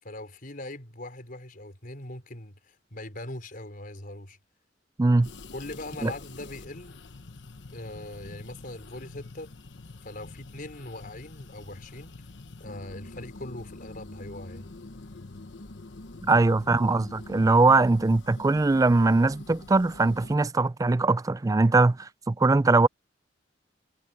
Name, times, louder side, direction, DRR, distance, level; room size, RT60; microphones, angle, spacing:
voice 1, 0.0-4.4 5.5-7.0 7.7-9.5 10.0-12.1 12.6-14.7 16.2-16.4, left 1 dB, 50° left, 5.0 m, -41 dB
voice 2, 5.0-5.3 6.0-6.1 16.2-22.9, right 3 dB, 20° right, 0.4 m, -21 dB
sound 1, 5.2-20.4, left 2 dB, 75° left, 1.1 m, -45 dB
head